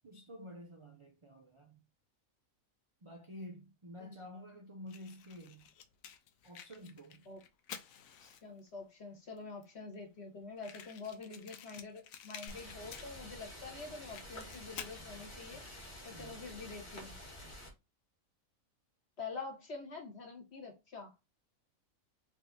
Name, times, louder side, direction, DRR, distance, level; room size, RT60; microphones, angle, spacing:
voice 1, 0.0-1.9 3.0-5.7 6.4-7.3 16.1-16.5, left 1 dB, 45° right, 0.4 m, -50 dB
Fire, 4.9-8.7 9.4-9.5 9.6-9.7 9.9-10.0 10.6-13.5 13.8-15.0, left 8 dB, 90° left, 1.0 m, -51 dB
voice 2, 8.2-15.6 16.0-17.2 19.2-21.1, left 4 dB, 55° left, 1.5 m, -46 dB
sound 1, 12.5-17.7, left 1 dB, 25° left, 1.3 m, -49 dB
3.6 x 2.6 x 3.6 m
omnidirectional pair, 1.4 m